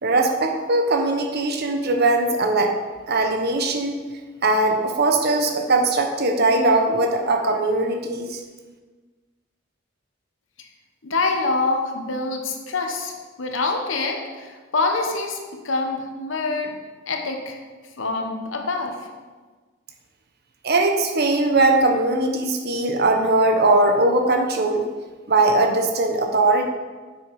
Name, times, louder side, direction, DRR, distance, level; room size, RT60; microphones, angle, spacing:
voice 1, 0.0-2.7 3.1-4.0 4.4-8.4 20.6-24.8 25.3-26.7, right 2 dB, 55° right, 4 dB, 1.0 m, -20 dB
voice 2, 11.0-15.4 15.6-16.7 17.1-17.6 18.0-18.9, left 3 dB, 75° left, 3 dB, 1.1 m, -25 dB
8.1 x 6.4 x 4.8 m, 1.4 s
head